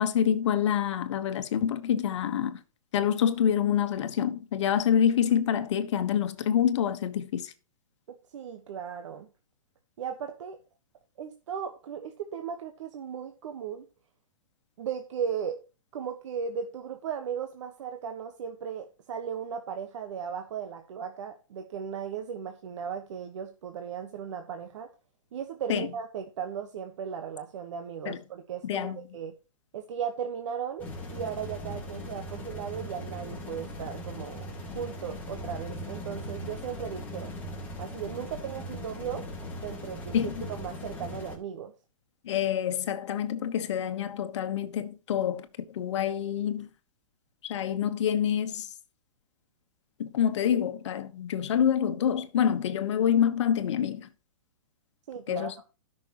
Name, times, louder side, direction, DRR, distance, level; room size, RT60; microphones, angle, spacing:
voice 1, 0.0-2.6 2.9-7.5 25.7-25.9 28.0-28.2 28.6-29.0 40.1-40.4 42.2-46.7 47.4-48.7 50.0-54.1 55.3-55.6, left 9 dB, 60° left, 1.4 m, -27 dB
voice 2, 8.3-9.3 10.0-10.6 11.2-13.8 14.8-15.6 15.9-24.9 25.3-29.3 29.7-34.5 34.7-37.3 37.8-39.3 39.6-41.7 55.1-55.6, right 7 dB, 60° right, 1.3 m, -36 dB
sound 1, 30.8-41.4, left 1 dB, 10° left, 3.1 m, -39 dB
17.0 x 6.2 x 3.0 m
hypercardioid pair, 155°, 17 cm